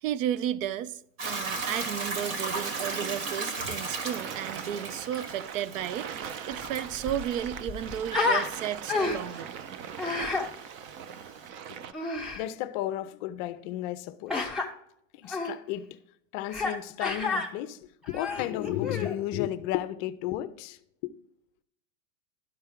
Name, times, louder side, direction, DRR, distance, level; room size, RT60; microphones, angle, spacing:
voice 1, 0.0-9.6, right 10 dB, 80° right, 0.6 m, -33 dB
sound 1, 1.2-11.9, right 8 dB, 35° right, 0.4 m, -41 dB
Hiss / Toilet flush / Trickle dribble, 1.2-11.5, right 3 dB, 50° right, 1.8 m, -38 dB
Human voice, 6.5-6.6 6.9-8.5 8.9-9.4 10.0-10.5 11.9-12.4 14.3-14.7 15.3-15.5 16.5-16.8 17.0-17.5 18.0-19.1, left 3 dB, ahead, 0.9 m, -30 dB
voice 2, 12.3-14.5 15.1-16.0 16.3-21.1, left 13 dB, 40° left, 0.5 m, -33 dB
12.0 x 4.4 x 3.6 m
supercardioid pair, 135°, 39 cm